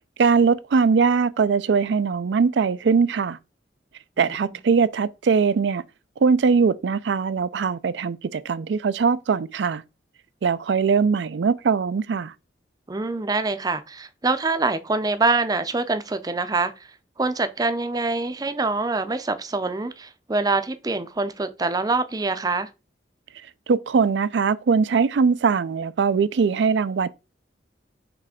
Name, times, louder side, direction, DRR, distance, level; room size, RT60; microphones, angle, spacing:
voice 1, 0.2-3.4 4.2-5.8 6.2-9.8 10.4-12.3 23.7-27.1, right 5 dB, 85° right, 0.4 m, -21 dB
voice 2, 12.9-16.7 17.2-22.7, right 3 dB, 20° right, 0.5 m, -25 dB
6.0 x 3.3 x 4.9 m
head